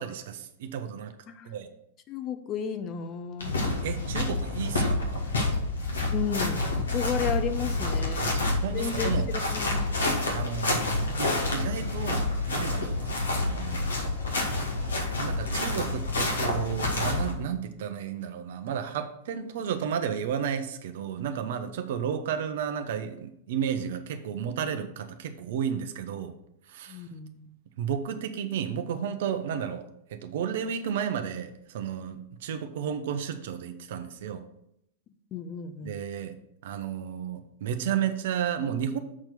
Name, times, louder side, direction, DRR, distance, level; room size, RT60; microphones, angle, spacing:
voice 1, 0.0-1.1 1.5-1.7 3.8-5.2 8.2-8.3 8.6-9.3 10.3-13.9 15.2-26.3 26.7-27.0 27.8-29.8 30.1-34.4 35.8-36.3 36.6-39.0, right 8 dB, 60° right, 8 dB, 0.9 m, -32 dB
voice 2, 1.3-1.6 2.1-3.6 6.1-8.2 8.7-9.9 26.9-27.6 35.3-36.0, left 7 dB, 35° left, 10 dB, 0.8 m, -33 dB
sound 1, 3.4-17.3, left 2 dB, 80° left, 1.9 m, -28 dB
7.3 x 4.5 x 6.6 m, 0.78 s
hypercardioid pair, 100°, 0 cm